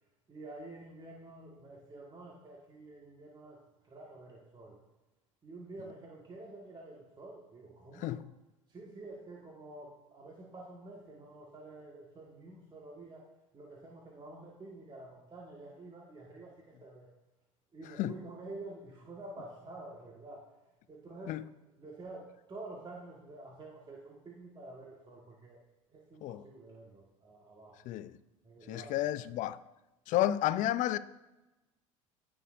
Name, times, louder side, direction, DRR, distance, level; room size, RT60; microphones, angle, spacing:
voice 1, 0.3-4.8 5.4-8.2 8.7-13.3 13.5-17.1 17.7-20.5 20.9-21.4 21.8-25.6 25.9-27.9 28.4-29.3, right 2 dB, 25° right, 1.5 m, -49 dB
voice 2, 28.7-29.6 30.1-31.0, left 13 dB, 50° left, 0.5 m, -31 dB
16.5 x 6.3 x 2.5 m
figure-of-eight pair, 65°, 17 cm